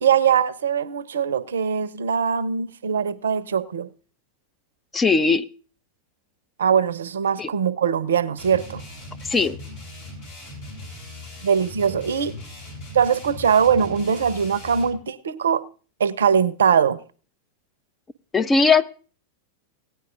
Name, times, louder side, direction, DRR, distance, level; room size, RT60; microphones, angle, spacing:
voice 1, 0.0-3.9 6.6-8.8 11.4-12.4 12.9-15.6 16.0-17.0, right 7 dB, 65° right, 0.6 m, -21 dB
voice 2, 4.9-5.4 7.4-7.5 9.3-9.6 18.3-18.9, left 4 dB, 15° left, 0.4 m, -18 dB
sound 1, 8.4-15.0, left 2 dB, 55° left, 6.0 m, -39 dB
17.5 x 9.5 x 2.5 m
figure-of-eight pair, 90°, 0 cm